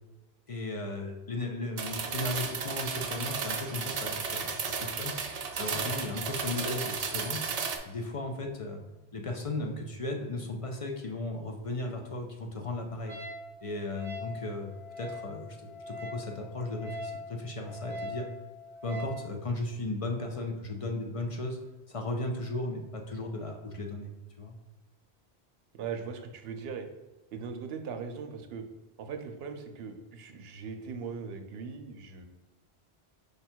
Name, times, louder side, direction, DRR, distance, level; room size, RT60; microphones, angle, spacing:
voice 1, 0.5-5.1 5.6-7.4 7.8-8.8 9.1-13.2 13.6-18.3 18.8-21.6 21.9-24.1 24.4-24.5, left 2 dB, 45° left, 3 dB, 0.4 m, -36 dB
sound 1, 1.8-7.8, right 5 dB, 50° right, 0.4 m, -34 dB
Wind instrument woodwind instrument, 13.1-19.2, left 2 dB, 20° right, 0.7 m, -42 dB
voice 2, 25.7-26.9 27.3-28.6 29.0-32.3, right 5 dB, 75° right, 6 dB, 0.8 m, -39 dB
5.1 x 2.3 x 4.4 m, 1.1 s
omnidirectional pair, 1.1 m